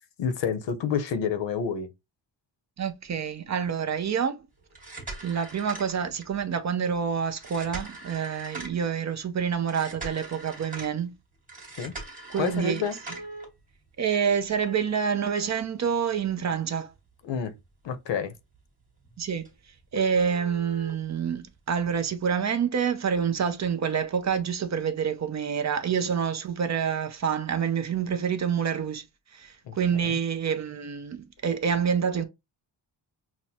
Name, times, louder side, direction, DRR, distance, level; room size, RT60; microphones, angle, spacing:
voice 1, 0.2-1.9 11.8-11.9 12.4-13.0 17.2-17.5 17.8-18.3 29.7-29.8 30.0-30.2, left 6 dB, 75° left, 0.8 m, -28 dB
voice 2, 2.8-4.4 5.2-11.1 12.3-12.8 14.0-16.9 19.2-19.5 19.9-29.0 29.3-32.2, right 7 dB, 40° right, 0.4 m, -27 dB
sound 1, 4.6-6.4 7.4-8.9 9.7-10.9 11.5-13.4 14.6-16.5 16.9-17.0 17.6-17.7 18.1-18.3 18.5-18.6 19.0-19.1 19.4-19.5 19.9-20.9 22.0-22.1, right 2 dB, 20° right, 1.4 m, -40 dB
6.0 x 2.1 x 2.7 m
wide cardioid pair, 175°, 44 cm